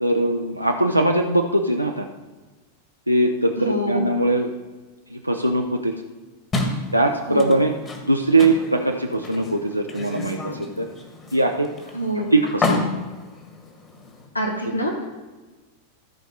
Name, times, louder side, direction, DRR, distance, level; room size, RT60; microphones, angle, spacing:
voice 1, 0.0-2.1 3.1-4.5 5.1-5.9 6.9-7.7 8.1-10.9 11.3-11.7 12.3-12.9, right 2 dB, 90° right, 3 dB, 0.6 m, -21 dB
voice 2, 3.6-4.1 7.3-7.5 11.9-12.3 14.3-15.1, right 1 dB, 85° left, 2 dB, 1.3 m, -25 dB
sound 1, 6.5-14.3, left 3 dB, 20° left, 1.6 m, -30 dB
13.5 x 4.6 x 5.4 m, 1.2 s
figure-of-eight pair, 90°, 0 cm